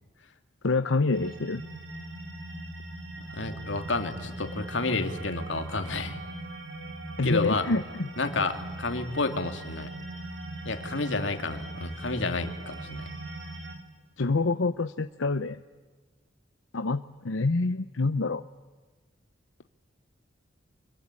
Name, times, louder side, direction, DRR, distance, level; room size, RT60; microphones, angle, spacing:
voice 1, 0.6-1.6 7.2-8.1 14.2-15.6 16.7-18.4, left 3 dB, 90° left, 10 dB, 0.8 m, -27 dB
sound 1, 1.1-13.7, right 2 dB, 70° right, 4.0 m, -40 dB
voice 2, 3.2-6.2 7.2-7.6 8.2-9.9 10.6-13.1, left 3 dB, 70° left, 6 dB, 2.5 m, -30 dB
25.5 x 23.0 x 9.8 m, 1.4 s
head